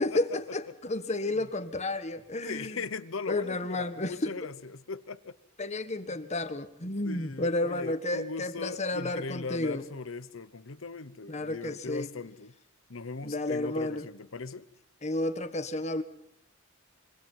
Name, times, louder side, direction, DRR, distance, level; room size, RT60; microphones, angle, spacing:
voice 1, 0.0-2.8 3.3-4.3 5.6-9.8 11.3-12.1 13.2-14.0 15.0-16.0, left 2 dB, 35° left, 1.6 m, -31 dB
voice 2, 2.4-5.3 6.0-6.2 7.0-12.5 12.9-14.7, left 4 dB, 80° left, 0.9 m, -39 dB
25.5 x 24.0 x 5.7 m
head